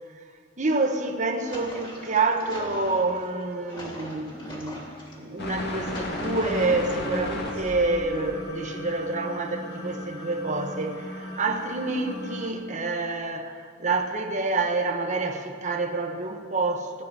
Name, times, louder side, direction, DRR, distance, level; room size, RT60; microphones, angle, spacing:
voice 1, 0.6-17.0, right 3 dB, 40° right, 4 dB, 1.2 m, -28 dB
sound 1, 1.2-5.1 5.6-6.8 7.5-8.2, equal, 25° left, 2.8 m, -41 dB
sound 2, 5.4-12.5, left 1 dB, 55° left, 2.0 m, -34 dB
15.5 x 7.0 x 9.8 m, 2.2 s
head